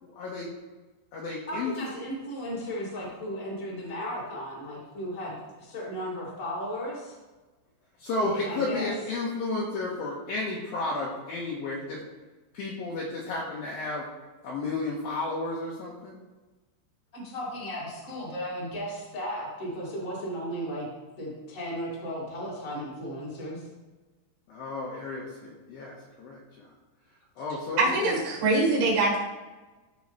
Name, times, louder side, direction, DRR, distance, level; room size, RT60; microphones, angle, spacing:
voice 1, 0.1-0.5 1.1-1.7 8.0-12.0 12.5-14.1 14.4-16.2 24.5-26.7 27.4-28.2, left 2 dB, 75° left, -4 dB, 2.2 m, -32 dB
voice 2, 1.5-7.2 8.2-8.9 17.1-20.9 21.2-23.7, equal, 35° left, -6 dB, 1.3 m, -35 dB
voice 3, 27.8-29.2, right 2 dB, 70° right, -5 dB, 4.1 m, -23 dB
14.0 x 5.3 x 3.2 m, 1.2 s
omnidirectional pair, 5.7 m